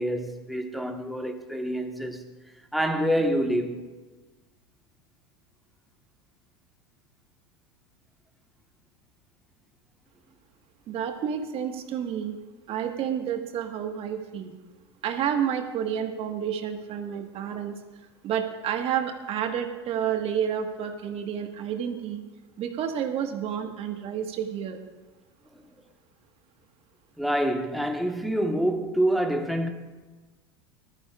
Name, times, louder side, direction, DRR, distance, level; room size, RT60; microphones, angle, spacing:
voice 1, 0.0-2.3 2.7-3.8 25.5-25.6 27.2-29.7, equal, ahead, 1.4 m, -26 dB
voice 2, 10.9-12.4 12.7-14.5 15.0-17.8 18.2-22.2 22.6-24.8, right 8 dB, 45° right, 1.6 m, -30 dB
19.0 x 13.0 x 2.5 m
hypercardioid pair, 85°, 14 cm